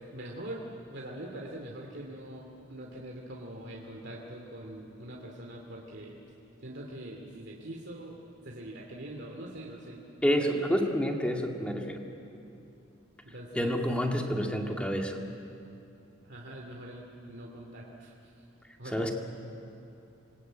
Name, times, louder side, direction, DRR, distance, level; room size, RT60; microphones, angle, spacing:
voice 1, 0.1-6.2 6.6-8.2 8.4-10.0 10.4-10.6 13.3-13.8 16.2-18.1 18.8-19.1, right 1 dB, 55° right, -1 dB, 2.5 m, -43 dB
voice 2, 10.2-12.0 13.6-15.2 18.8-19.1, equal, 5° left, 2 dB, 1.9 m, -29 dB
26.5 x 21.5 x 9.1 m, 2.8 s
head